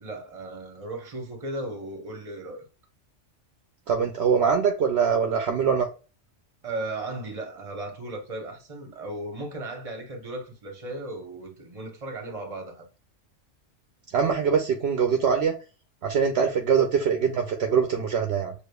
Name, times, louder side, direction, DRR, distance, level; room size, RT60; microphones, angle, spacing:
voice 1, 0.0-2.6 6.6-12.8 16.4-16.5, right 2 dB, 30° right, 0.9 m, -36 dB
voice 2, 3.9-5.9 14.1-15.5 16.0-18.5, right 6 dB, 65° right, 0.8 m, -23 dB
6.6 x 2.5 x 2.2 m
omnidirectional pair, 1.3 m